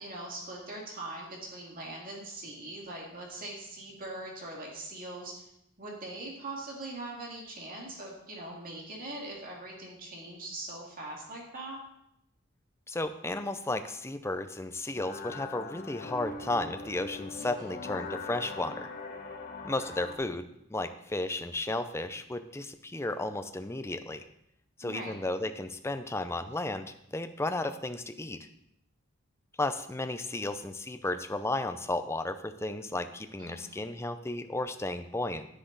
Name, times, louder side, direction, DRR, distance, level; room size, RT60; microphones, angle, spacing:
voice 1, 0.0-5.4 5.8-11.8 17.6-17.7 24.8-25.2 33.4-33.8, right 2 dB, 40° right, -2 dB, 2.4 m, -41 dB
voice 2, 12.9-18.9 19.6-20.4 20.7-24.2 24.8-28.4 29.6-35.5, left 2 dB, 10° left, 8 dB, 0.5 m, -34 dB
sound 1, 15.0-20.2, left 4 dB, 40° left, 1.2 m, -41 dB
10.0 x 9.8 x 4.0 m, 0.77 s
head